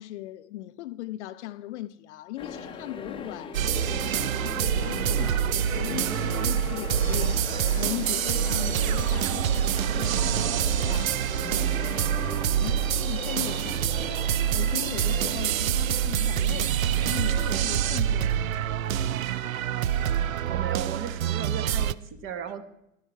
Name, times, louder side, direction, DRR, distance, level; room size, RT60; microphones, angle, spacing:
voice 1, 0.0-14.2 14.5-18.5, left 15 dB, 60° left, 0.5 m, -39 dB
sound 1, 2.4-15.4, left 5 dB, 15° left, 0.8 m, -39 dB
Evil Intent, 3.5-21.9, right 10 dB, 90° right, 0.5 m, -26 dB
voice 2, 20.5-22.6, right 7 dB, 30° right, 1.1 m, -36 dB
11.5 x 10.0 x 4.4 m
hypercardioid pair, 120°, 39 cm